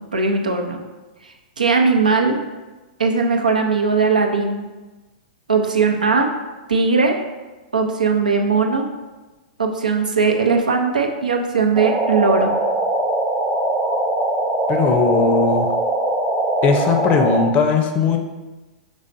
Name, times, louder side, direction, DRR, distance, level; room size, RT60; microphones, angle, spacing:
voice 1, 0.1-0.8 1.2-2.4 3.0-4.7 5.5-6.3 6.7-7.2 7.7-8.9 9.6-12.5, right 4 dB, 85° right, 3 dB, 0.6 m, -19 dB
sound 1, 11.8-17.5, right 1 dB, 15° right, 0.7 m, -21 dB
voice 2, 14.7-15.7 16.6-18.2, left 5 dB, 30° left, 5 dB, 0.5 m, -18 dB
5.4 x 3.4 x 2.6 m, 1.2 s
hypercardioid pair, 110°, 4 cm